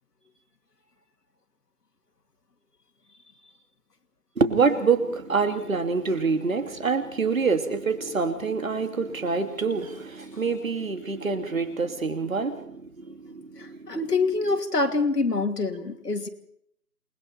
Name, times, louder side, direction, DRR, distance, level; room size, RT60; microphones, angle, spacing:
voice 1, 4.4-14.0, right 4 dB, 55° right, 7 dB, 2.9 m, -26 dB
voice 2, 13.6-16.3, left 3 dB, 80° left, 5 dB, 3.0 m, -25 dB
28.5 x 21.0 x 4.4 m, 0.70 s
figure-of-eight pair, 165°, 47 cm